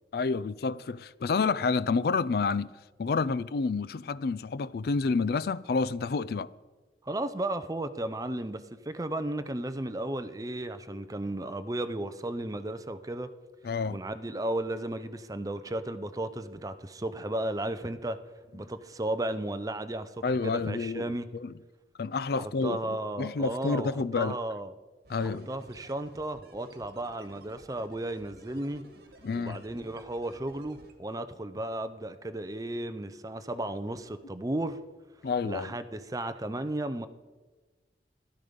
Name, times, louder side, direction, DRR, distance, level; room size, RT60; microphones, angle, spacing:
voice 1, 0.1-2.7 3.0-6.5 13.6-14.0 20.2-21.5 22.0-24.4 25.1-25.5 29.2-29.6 35.2-35.8, left 4 dB, 60° left, 0.4 m, -29 dB
voice 2, 7.0-13.3 13.9-18.2 18.5-21.3 22.3-24.7 25.2-28.8 29.4-34.8 35.4-37.1, right 1 dB, 20° right, 0.6 m, -34 dB
sound 1, 25.0-30.9, right 2 dB, 60° right, 1.9 m, -54 dB
13.0 x 12.0 x 5.2 m
head